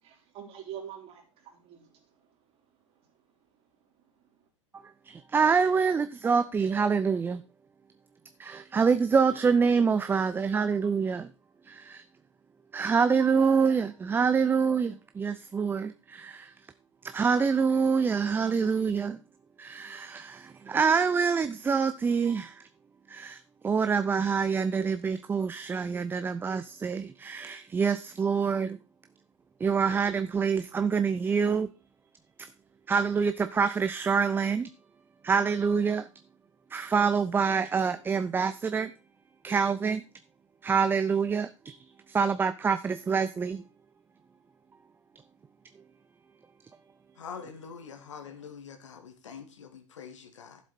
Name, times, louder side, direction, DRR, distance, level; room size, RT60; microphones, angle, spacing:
voice 1, 0.0-2.4 4.2-4.3, right 9 dB, 40° right, 3.7 m, -45 dB
voice 2, 5.1-7.4 8.4-11.3 11.7-12.0 12.7-16.5 17.0-19.2 19.6-22.6 23.1-28.8 29.6-31.7 32.9-34.7 35.2-36.1 36.7-38.9 39.4-40.0 40.6-41.8 42.1-43.6, right 5 dB, 15° right, 0.5 m, -26 dB
voice 3, 47.2-50.6, left 6 dB, 70° left, 2.1 m, -44 dB
12.5 x 7.4 x 4.2 m
figure-of-eight pair, 90°, 16 cm